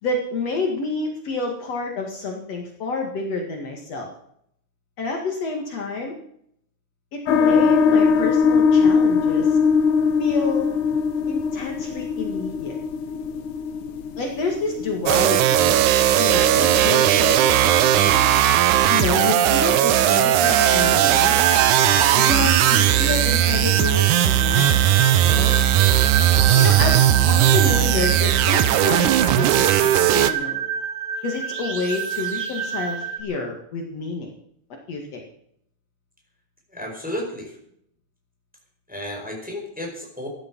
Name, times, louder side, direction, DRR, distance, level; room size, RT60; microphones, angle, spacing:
voice 1, 0.0-4.1 5.0-6.1 7.1-9.6 10.2-10.7 11.3-12.8 14.2-17.4 18.9-21.4 22.2-24.8 25.2-25.6 26.5-27.0 27.3-30.6 31.2-34.3 34.9-35.2, left 3 dB, 60° left, 1 dB, 2.9 m, -28 dB
sound 1, 7.3-18.4, left 5 dB, 85° left, 2.7 m, -22 dB
sound 2, 15.1-30.3, right 12 dB, 85° right, 2.3 m, -17 dB
sound 3, 20.4-33.2, right 6 dB, 45° right, 1.1 m, -28 dB
voice 2, 36.7-37.6 38.9-40.3, left 1 dB, 5° right, 0 dB, 4.7 m, -32 dB
15.0 x 12.0 x 6.1 m, 0.70 s
omnidirectional pair, 3.4 m